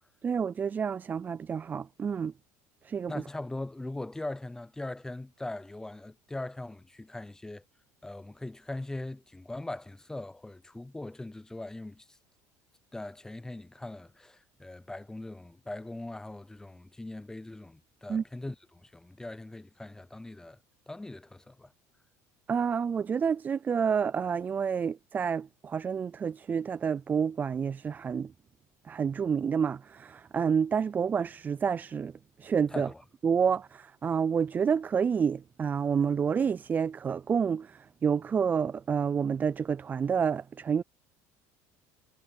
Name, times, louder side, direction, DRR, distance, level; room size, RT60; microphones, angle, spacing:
voice 1, 0.2-2.3 2.8-3.1 18.1-18.2 22.5-28.3 28.9-32.1 32.4-32.9 33.2-40.8, right 6 dB, 25° right, 0.3 m, -29 dB
voice 2, 3.1-7.6 8.0-12.2 12.9-20.6 20.9-21.7 32.7-33.0, left 2 dB, 10° left, 0.7 m, -40 dB
cardioid pair, 120°, 7 cm